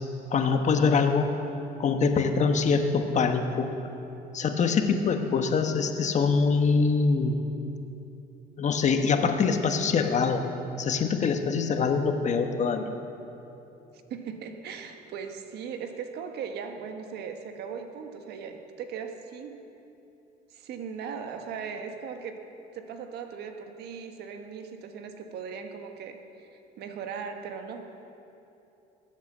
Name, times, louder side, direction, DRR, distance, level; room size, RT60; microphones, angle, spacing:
voice 1, 0.3-1.3 1.8-3.7 4.3-7.4 8.6-10.4 10.8-12.9, left 5 dB, 45° left, 6 dB, 1.3 m, -24 dB
voice 2, 13.9-19.6 20.5-22.4 22.7-27.9, right 6 dB, 75° right, 6 dB, 1.4 m, -38 dB
21.0 x 8.2 x 7.4 m, 2.9 s
cardioid pair, 110°, 17 cm